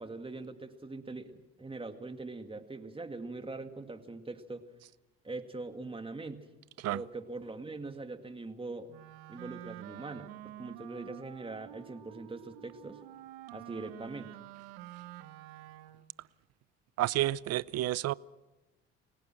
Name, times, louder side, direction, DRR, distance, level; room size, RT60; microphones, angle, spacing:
voice 1, 0.0-4.6 5.2-6.5 6.9-8.9 9.3-13.0 13.5-14.3, right 3 dB, 20° right, 2.2 m, -42 dB
Wind instrument woodwind instrument, 8.9-16.1, right 14 dB, 80° right, 1.2 m, -49 dB
voice 2, 17.0-18.1, right 15 dB, 55° right, 0.6 m, -30 dB
29.5 x 17.5 x 6.2 m
supercardioid pair, 70°, 30 cm